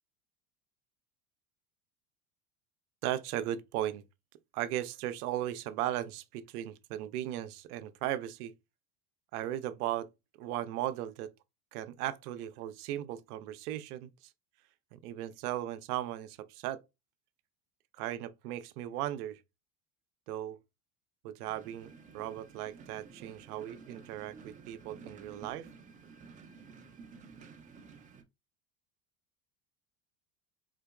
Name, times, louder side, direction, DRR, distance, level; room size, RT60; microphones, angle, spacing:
voice 1, 3.0-4.0 4.5-8.5 9.3-10.1 10.4-11.3 11.7-14.3 14.9-16.8 18.0-19.4 20.3-20.6 21.2-25.7, right 13 dB, 75° right, 0.6 m, -37 dB
sound 1, 21.4-28.2, right 5 dB, 20° right, 0.3 m, -52 dB
3.9 x 2.8 x 2.3 m
hypercardioid pair, 80°, 46 cm